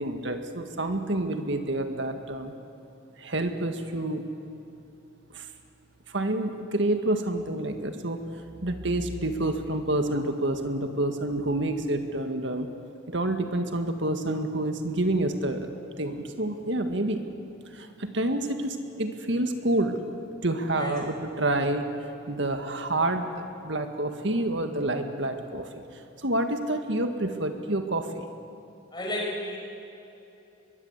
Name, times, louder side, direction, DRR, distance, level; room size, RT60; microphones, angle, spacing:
voice 1, 0.0-2.5 3.2-4.2 5.3-5.5 6.1-8.2 8.6-12.7 13.1-15.7 16.0-17.2 17.7-20.0 20.4-21.9 22.3-25.7 26.2-28.3, right 1 dB, 60° right, 6 dB, 1.9 m, -28 dB
voice 2, 28.9-29.6, left 1 dB, 20° left, -2 dB, 5.4 m, -32 dB
22.5 x 22.0 x 8.3 m, 2.9 s
head